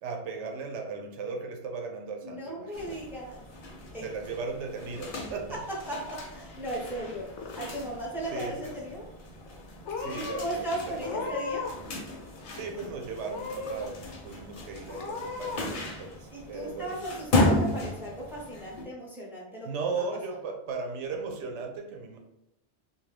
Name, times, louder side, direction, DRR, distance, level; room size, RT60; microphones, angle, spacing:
voice 1, 0.0-3.0 4.0-5.6 8.3-8.7 10.0-11.3 12.5-14.0 14.2-17.0 19.6-22.2, right 4 dB, 85° right, 3 dB, 0.9 m, -37 dB
voice 2, 2.2-3.4 3.9-4.0 5.9-7.3 7.6-9.1 10.1-11.7 16.3-19.7, right 1 dB, ahead, -4 dB, 0.6 m, -36 dB
sound 1, 2.7-18.8, left 2 dB, 55° left, 0.7 m, -35 dB
Purr / Meow, 7.1-7.9 8.2-8.8 9.5-9.6 9.8-10.5 11.0-11.9 12.1-12.9 13.3-13.9 14.3-14.4 14.9-15.6, left 4 dB, 85° left, 0.9 m, -37 dB
2.7 x 2.3 x 3.2 m, 0.88 s
omnidirectional pair, 1.2 m